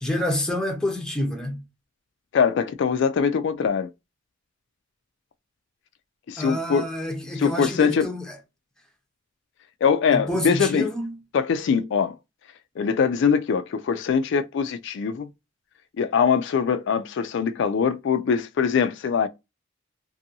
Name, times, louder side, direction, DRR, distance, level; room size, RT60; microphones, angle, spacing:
voice 1, 0.0-1.6 6.4-8.4 10.1-11.2, left 1 dB, 5° left, 0.6 m, -28 dB
voice 2, 2.3-3.9 6.3-6.9 7.4-8.1 9.8-10.9 11.3-12.1 12.8-15.3 16.0-19.3, left 6 dB, 60° left, 0.3 m, -22 dB
2.6 x 2.6 x 2.6 m
head